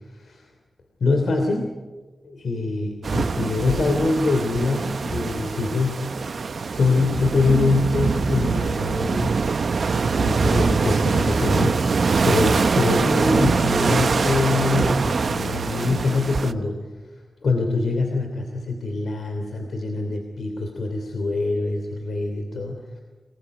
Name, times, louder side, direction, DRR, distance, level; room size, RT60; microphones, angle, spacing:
voice 1, 0.1-0.5 1.0-1.8 2.2-6.1 6.7-9.4 9.9-16.9 17.4-23.0, left 3 dB, 80° left, 4 dB, 3.1 m, -24 dB
sound 1, 3.0-16.5, right 4 dB, 60° right, 0.9 m, -23 dB
28.0 x 21.0 x 9.8 m, 1.3 s
wide cardioid pair, 145°, 0 cm